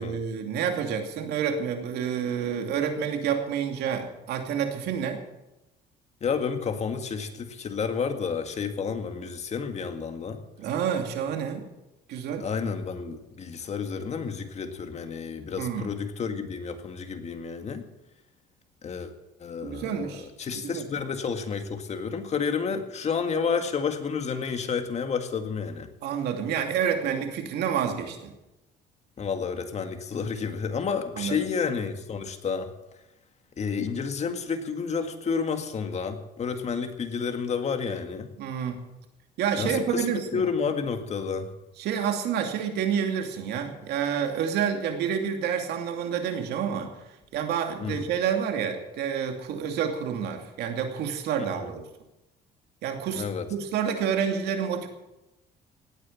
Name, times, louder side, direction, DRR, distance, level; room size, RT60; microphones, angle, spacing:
voice 1, 0.0-5.2 10.6-11.6 12.1-12.5 15.6-15.9 19.6-20.3 20.5-20.8 26.0-28.3 31.2-31.5 38.4-38.8 39.4-40.4 41.8-47.0 47.3-51.8 52.8-53.2 53.5-54.9, right 7 dB, 80° right, 5 dB, 2.6 m, -28 dB
voice 2, 6.2-10.4 12.4-17.8 18.8-19.1 19.4-20.0 20.4-25.9 29.2-32.7 33.6-38.3 39.6-41.5 47.8-48.0 51.4-51.7 53.2-53.5, left 6 dB, 40° left, 7 dB, 2.0 m, -30 dB
17.5 x 9.4 x 7.4 m, 0.96 s
cardioid pair, 110°, 17 cm